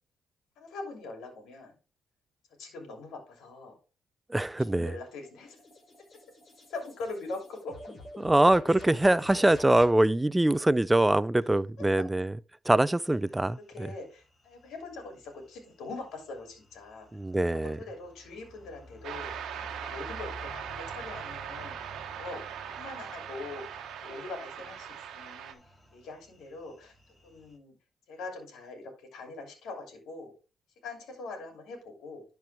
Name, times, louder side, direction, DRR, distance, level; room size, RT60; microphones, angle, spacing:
voice 1, 0.6-1.7 2.6-3.8 4.7-5.6 6.7-7.8 11.8-12.0 13.7-17.1 17.5-19.4 19.8-21.7 22.1-22.4 22.7-25.6 25.9-26.9 27.2-27.7 28.1-30.3 30.8-32.2, left 3 dB, 80° left, 2.8 m, -42 dB
voice 2, 4.3-4.9 8.2-12.3 12.7-13.9 17.1-17.8, right 1 dB, 10° right, 0.4 m, -24 dB
sound 1, 4.6-10.0, left 1 dB, 45° left, 4.2 m, -47 dB
sound 2, 13.0-27.6, equal, 20° left, 4.2 m, -53 dB
sound 3, 19.0-25.5, right 8 dB, 80° right, 1.0 m, -40 dB
11.0 x 4.5 x 3.4 m
cardioid pair, 90°, 0 cm